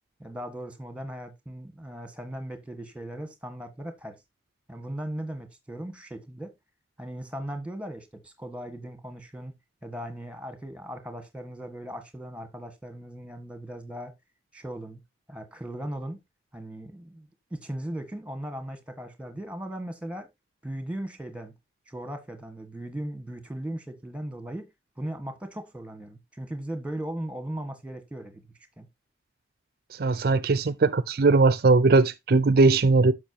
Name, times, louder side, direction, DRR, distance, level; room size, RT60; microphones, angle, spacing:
voice 1, 0.2-4.2 4.7-6.5 7.0-9.5 9.8-14.1 14.5-15.0 15.3-16.2 16.5-20.3 20.6-21.5 21.9-24.7 25.0-28.5 28.8-28.9, right 1 dB, 5° right, 1.4 m, -38 dB
voice 2, 30.0-33.1, right 3 dB, 55° right, 0.5 m, -20 dB
10.0 x 6.5 x 2.8 m
head